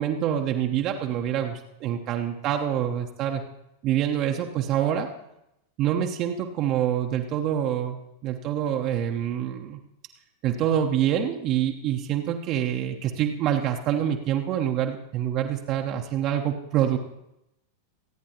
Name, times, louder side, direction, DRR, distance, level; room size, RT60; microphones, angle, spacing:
voice 1, 0.0-3.4 3.8-5.1 5.8-9.8 10.4-17.0, right 10 dB, 35° right, 3 dB, 0.9 m, -26 dB
24.0 x 9.4 x 2.8 m, 0.87 s
figure-of-eight pair, 90°, 0 cm